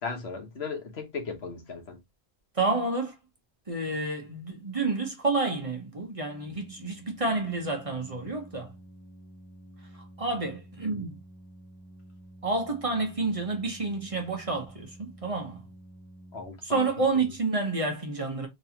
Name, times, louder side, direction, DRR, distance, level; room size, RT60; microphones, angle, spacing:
voice 1, 0.0-2.0 16.3-16.9, left 5 dB, 80° left, 1.4 m, -36 dB
voice 2, 2.5-3.1 3.7-8.7 9.9-11.2 12.4-15.6 16.6-18.5, right 3 dB, 35° right, 1.0 m, -29 dB
Organ, 6.2-17.0, right 1 dB, 30° left, 1.8 m, -50 dB
4.0 x 3.0 x 2.8 m
omnidirectional pair, 1.0 m